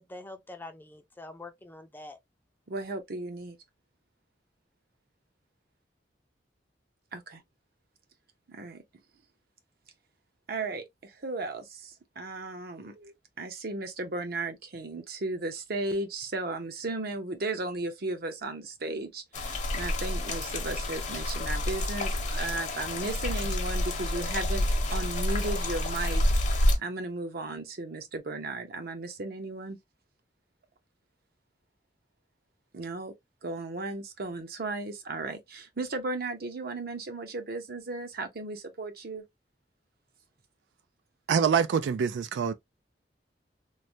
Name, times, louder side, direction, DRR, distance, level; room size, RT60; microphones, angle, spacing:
voice 1, 0.0-2.2, left 2 dB, 10° left, 0.4 m, -45 dB
voice 2, 2.7-3.6 7.1-7.4 8.5-8.8 10.5-29.8 32.7-33.1 33.4-39.2, right 2 dB, 60° right, 0.7 m, -35 dB
sound 1, 19.3-26.8, left 1 dB, 45° left, 0.7 m, -28 dB
voice 3, 41.3-42.5, right 7 dB, 85° right, 0.3 m, -25 dB
3.2 x 2.1 x 2.6 m
head